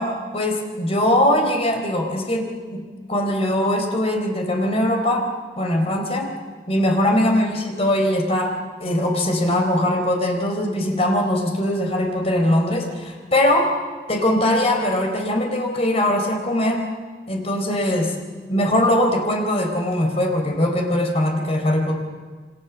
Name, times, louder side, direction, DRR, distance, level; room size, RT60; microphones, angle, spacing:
voice 1, 0.0-5.3 5.6-6.3 6.7-13.8 14.1-16.9 17.3-18.1 18.5-21.9, left 1 dB, 35° left, 3 dB, 4.0 m, -21 dB
27.5 x 25.5 x 7.2 m, 1.5 s
head